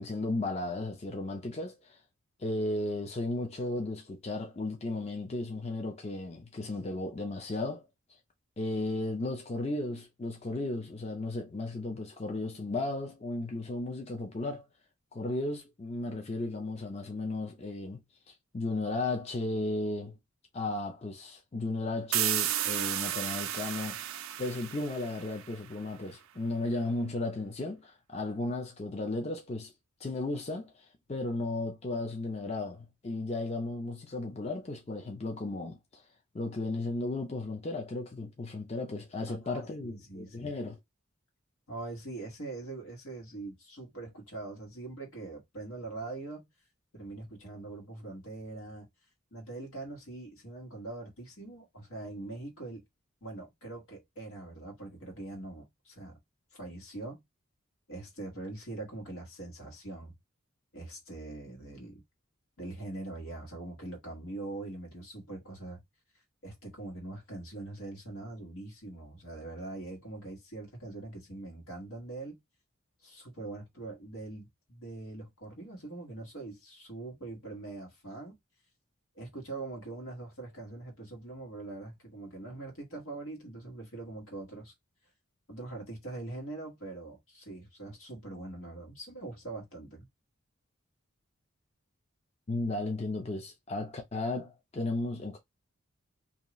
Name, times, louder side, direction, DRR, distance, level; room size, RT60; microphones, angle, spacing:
voice 1, 0.0-2.0 2.4-7.8 8.6-14.7 15.1-18.0 18.3-20.2 20.5-29.7 30.0-36.0 36.3-40.8 92.5-95.4, left 2 dB, 30° left, 0.4 m, -35 dB
sound 1, 22.1-25.7, right 12 dB, 80° right, 0.4 m, -33 dB
voice 2, 39.3-40.5 41.7-46.5 46.9-48.9 49.3-52.8 53.2-56.2 56.5-57.2 57.9-60.1 60.7-62.0 62.6-65.8 66.4-72.4 73.0-78.4 79.1-84.7 85.5-90.1, right 2 dB, 90° left, 1.4 m, -43 dB
2.7 x 2.3 x 3.0 m
head